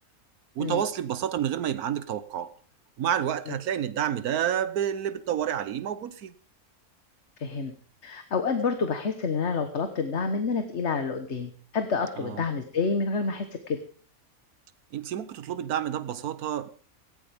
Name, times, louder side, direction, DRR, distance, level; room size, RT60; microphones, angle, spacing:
voice 1, 0.5-2.5 3.0-6.3 12.2-12.4 14.9-16.7, right 10 dB, 85° right, 1.4 m, -29 dB
voice 2, 7.4-7.7 8.0-13.8, left 4 dB, 50° left, 1.5 m, -28 dB
18.0 x 16.0 x 3.5 m
omnidirectional pair, 1.5 m